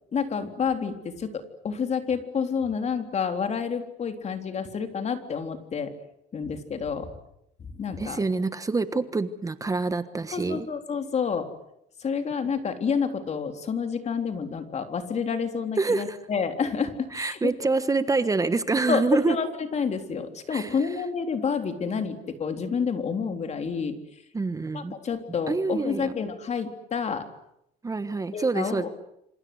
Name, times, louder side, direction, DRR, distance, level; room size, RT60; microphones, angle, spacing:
voice 1, 0.1-5.9 6.3-7.1 7.6-8.2 10.3-11.5 12.0-17.5 18.9-24.2 24.7-27.3 28.3-28.9, left 6 dB, 40° left, 7 dB, 3.6 m, -29 dB
voice 2, 8.0-10.7 15.8-16.2 17.1-19.4 20.5-20.7 24.3-25.0 25.5-26.1 27.8-28.9, right 3 dB, 20° right, 12 dB, 1.4 m, -26 dB
27.0 x 27.0 x 8.0 m, 0.79 s
cardioid pair, 110°, 17 cm